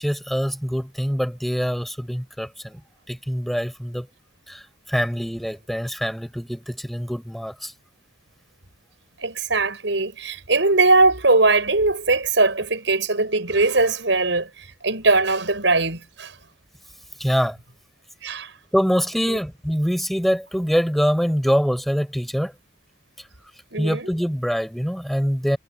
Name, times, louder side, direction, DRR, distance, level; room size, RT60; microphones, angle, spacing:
voice 1, 0.0-2.8 3.1-4.1 4.5-7.7 17.2-17.6 18.7-22.5 23.8-25.6, equal, ahead, 7.1 m, -24 dB
voice 2, 9.2-14.5 14.8-16.3 18.2-18.5 19.3-19.4 23.7-24.1, right 3 dB, 85° right, 6.0 m, -20 dB
head